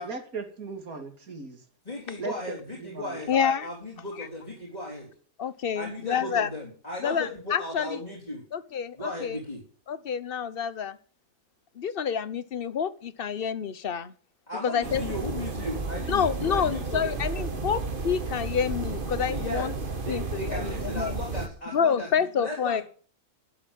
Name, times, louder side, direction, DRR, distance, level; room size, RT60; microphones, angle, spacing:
voice 1, 0.0-1.6 2.2-3.2, right 4 dB, 65° right, 4 dB, 3.1 m, -38 dB
voice 2, 1.8-3.3 3.6-5.1 5.8-8.4 9.0-9.6 14.5-17.5 19.3-22.1 22.4-22.8, left 1 dB, 25° left, -5 dB, 4.1 m, -36 dB
voice 3, 3.3-3.7 4.2-4.3 5.4-6.5 7.0-8.0 8.5-9.4 9.9-11.0 11.8-14.1 14.6-15.0 16.1-19.7 20.1-21.1 21.7-22.8, left 7 dB, 45° left, 15 dB, 0.9 m, -28 dB
sound 1, 14.8-21.5, right 3 dB, 35° right, 1.6 m, -32 dB
12.5 x 8.0 x 9.1 m, 0.43 s
omnidirectional pair, 1.7 m